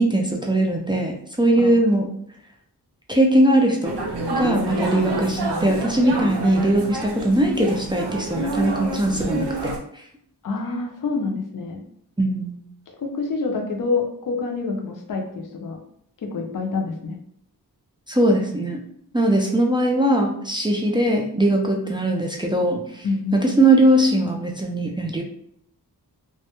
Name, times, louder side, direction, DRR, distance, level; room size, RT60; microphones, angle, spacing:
voice 1, 0.0-2.1 3.1-4.0 4.3-9.7 12.2-12.5 18.1-18.8 19.1-23.1 23.3-25.2, right 1 dB, 15° right, 0 dB, 0.3 m, -20 dB
sound 1, 3.8-9.8, right 2 dB, 85° right, 0.5 m, -28 dB
voice 2, 10.4-11.8 13.0-15.8 16.2-17.2 23.0-23.4, left 4 dB, 55° left, 2 dB, 0.5 m, -27 dB
2.2 x 2.1 x 2.8 m, 0.68 s
wide cardioid pair, 65°, 39 cm